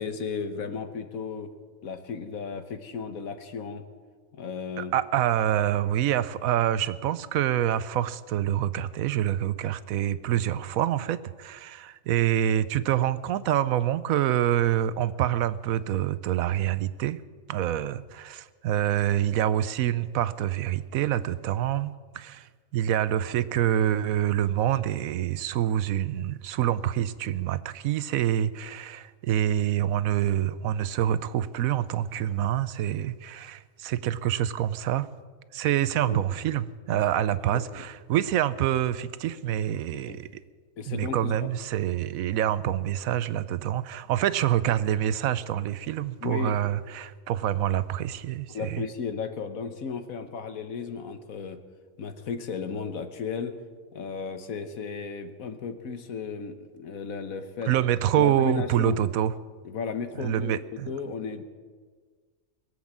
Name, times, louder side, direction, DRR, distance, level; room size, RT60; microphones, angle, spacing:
voice 1, 0.0-1.5 1.8-3.8 4.3-4.9 36.0-36.2 36.9-37.0 37.5-37.8 39.9-40.2 40.8-41.5 46.2-46.6 48.5-51.6 52.0-53.6 53.9-57.7 58.2-59.0 59.6-60.6 60.9-61.4, left 5 dB, 90° left, 9 dB, 1.5 m, -34 dB
voice 2, 4.8-17.2 17.5-35.1 35.5-40.4 40.9-48.8 57.7-59.3 60.2-60.9, right 11 dB, 85° right, 16 dB, 1.1 m, -26 dB
21.5 x 7.9 x 7.3 m, 1.5 s
omnidirectional pair, 1.4 m